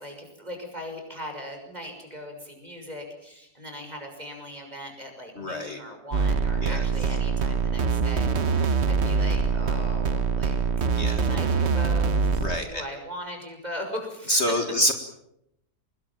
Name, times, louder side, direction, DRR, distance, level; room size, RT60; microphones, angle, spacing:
voice 1, 0.0-10.5 11.1-14.6, equal, 25° right, 4 dB, 6.3 m, -39 dB
voice 2, 5.4-5.8 6.6-6.9 10.9-11.2 12.4-12.8 14.3-14.9, equal, 45° left, 6 dB, 2.1 m, -26 dB
sound 1, 6.1-12.6, right 4 dB, 45° right, 1.2 m, -24 dB
25.0 x 21.0 x 7.5 m, 0.81 s
omnidirectional pair, 1.7 m